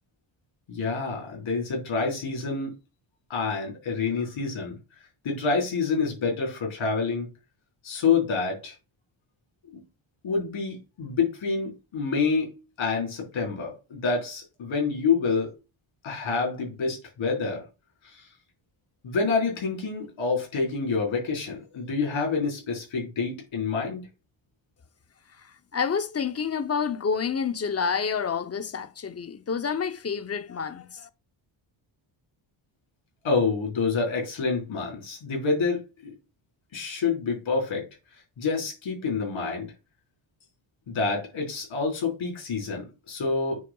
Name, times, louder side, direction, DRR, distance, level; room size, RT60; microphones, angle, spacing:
voice 1, 0.7-2.7 3.3-4.7 5.2-7.3 7.8-8.7 10.2-12.5 12.8-15.5 16.0-17.7 18.0-18.2 19.0-24.0 33.2-36.1 36.7-37.9 38.4-39.7 40.9-43.6, left 4 dB, 70° left, 4.3 m, -27 dB
voice 2, 25.7-31.1, left 6 dB, 30° left, 0.7 m, -28 dB
9.4 x 5.2 x 2.3 m
cardioid pair, 80°, 48 cm